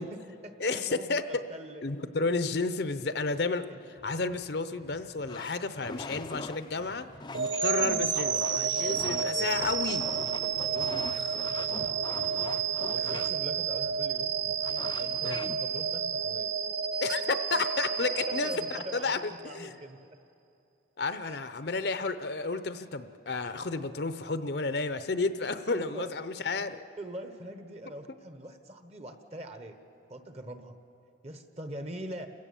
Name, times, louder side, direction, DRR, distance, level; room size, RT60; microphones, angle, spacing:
voice 1, 0.0-1.8 3.7-3.8 8.3-8.5 8.8-9.7 10.5-12.2 12.8-14.3 15.0-16.5 18.3-19.1 19.4-20.0 21.2-21.4 25.7-26.1 27.0-29.8 30.1-30.8 31.2-32.3, right 1 dB, 35° right, 7 dB, 1.2 m, -43 dB
voice 2, 0.6-1.4 1.8-7.1 7.3-10.0 11.2-11.3 12.9-13.3 15.2-15.4 17.0-19.7 21.0-26.8, left 3 dB, 55° left, 11 dB, 0.7 m, -32 dB
sound 1, 4.0-15.6, left 3 dB, 25° left, 0.5 m, -43 dB
sound 2, 7.3-19.5, right 6 dB, 85° right, 1.0 m, -31 dB
29.0 x 16.0 x 7.1 m, 2.7 s
head